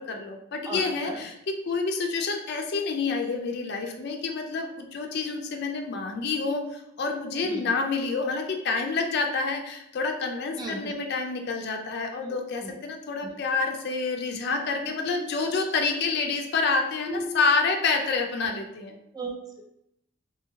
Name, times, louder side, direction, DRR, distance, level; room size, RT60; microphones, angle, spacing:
voice 1, 0.0-1.4 1.7-19.0, left 4 dB, 50° left, 3 dB, 0.4 m, -28 dB
voice 2, 10.6-10.9 12.6-12.7 15.1-15.5 17.1-17.5 19.1-19.6, right 1 dB, 20° right, 0 dB, 0.4 m, -35 dB
2.7 x 2.6 x 2.8 m, 0.80 s
head